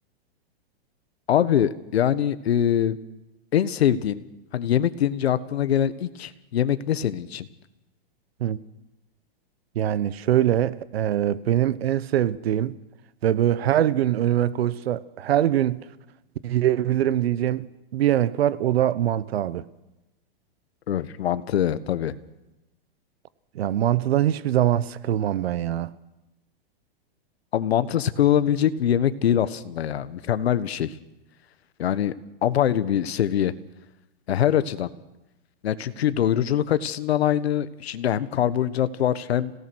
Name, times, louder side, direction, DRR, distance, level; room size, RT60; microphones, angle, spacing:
voice 1, 1.3-3.0 3.5-4.2 4.5-7.5 20.9-22.1 27.5-30.9 31.8-32.1 32.4-33.5 34.3-34.9 35.6-39.5, left 10 dB, 85° left, 1.4 m, -23 dB
voice 2, 9.7-12.7 13.2-15.8 16.4-17.7 17.9-19.6 23.5-25.9, right 11 dB, 80° right, 1.1 m, -23 dB
27.0 x 17.5 x 6.3 m
hypercardioid pair, 150°, 31 cm